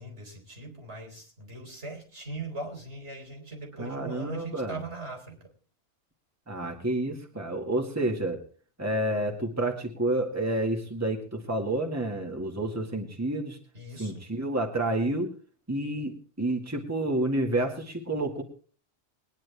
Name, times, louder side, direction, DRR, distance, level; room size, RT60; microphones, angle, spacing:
voice 1, 0.0-5.5 13.7-14.2, right 3 dB, 70° right, 3 dB, 4.4 m, -40 dB
voice 2, 3.8-4.8 6.5-8.4 8.8-13.6 14.0-15.3 15.7-18.4, right 1 dB, 15° right, 2 dB, 1.9 m, -29 dB
21.5 x 10.5 x 3.4 m, 0.40 s
omnidirectional pair, 1.2 m